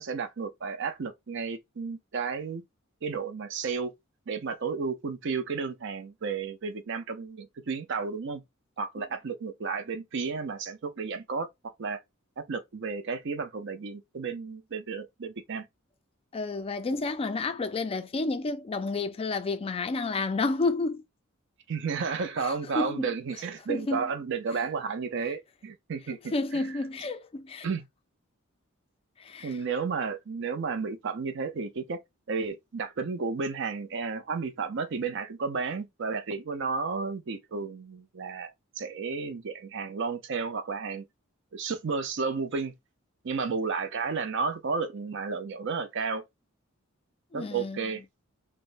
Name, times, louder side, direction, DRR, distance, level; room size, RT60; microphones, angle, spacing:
voice 1, 0.0-2.6 3.0-3.9 4.3-8.4 8.8-11.5 11.8-12.0 12.4-15.7 21.7-26.6 27.6-27.8 29.4-32.0 32.3-41.0 41.5-42.7 43.2-46.2 47.3-48.0, right 5 dB, 60° right, 0.5 m, -32 dB
voice 2, 16.3-21.0 22.4-23.1 23.7-24.1 26.3-27.7 29.2-29.5 47.3-47.8, left 3 dB, 30° left, 0.3 m, -30 dB
3.4 x 2.1 x 2.5 m
head